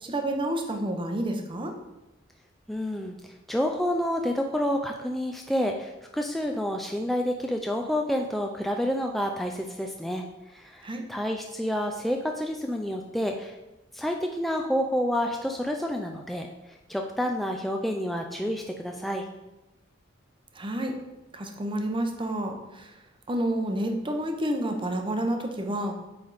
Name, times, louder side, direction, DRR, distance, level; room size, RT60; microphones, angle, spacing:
voice 1, 0.0-1.7 10.8-11.0 20.5-20.9 21.3-22.9 23.3-25.9, right 1 dB, 25° right, 3 dB, 0.7 m, -29 dB
voice 2, 2.7-10.2 10.5-13.6 13.9-16.5 16.9-19.3, equal, ahead, 2 dB, 0.3 m, -29 dB
8.4 x 3.4 x 4.0 m, 1.0 s
head